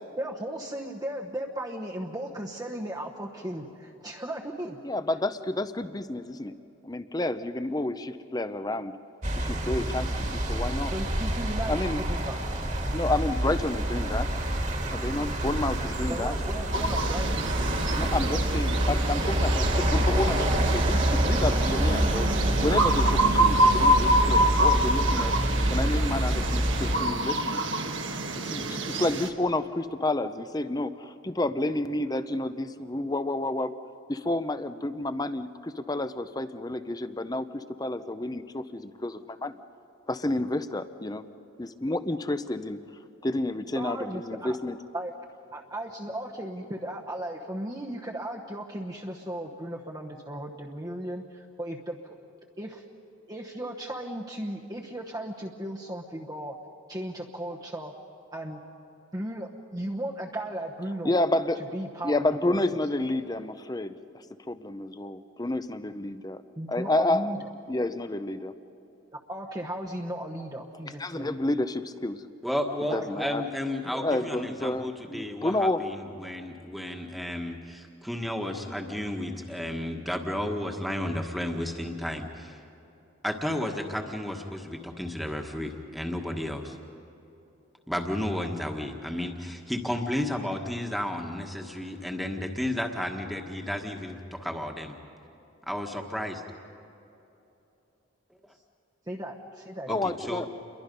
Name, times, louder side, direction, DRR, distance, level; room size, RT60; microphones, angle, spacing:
voice 1, 0.2-4.8 10.9-12.3 16.1-17.4 43.7-44.6 44.9-52.2 52.6-52.8 53.3-56.5 56.9-57.9 58.3-58.6 59.1-61.1 61.7-62.8 66.6-67.5 69.3-71.3 72.9-73.3 99.1-99.9, right 1 dB, 20° right, -1 dB, 1.0 m, -36 dB
voice 2, 4.8-6.5 6.8-8.9 9.3-10.9 11.7-12.0 12.9-14.3 14.9-16.3 18.0-22.3 22.6-25.3 25.7-27.6 28.4-33.7 34.1-39.5 40.1-41.3 41.6-42.8 43.2-44.8 61.0-61.6 62.0-63.9 64.5-66.4 66.7-67.3 67.7-68.5 71.0-72.2 72.9-73.4 73.9-75.8 99.9-100.5, left 2 dB, 20° left, 11 dB, 0.6 m, -30 dB
sound 1, 9.2-27.0, right 1 dB, 35° right, 1.9 m, -27 dB
sound 2, 16.7-29.3, right 1 dB, 70° right, 1.4 m, -27 dB
voice 3, 72.4-82.6 83.2-86.8 87.9-95.0 95.7-96.4 99.9-100.4, left 1 dB, ahead, 2 dB, 1.5 m, -32 dB
29.0 x 22.5 x 5.4 m, 2.9 s
head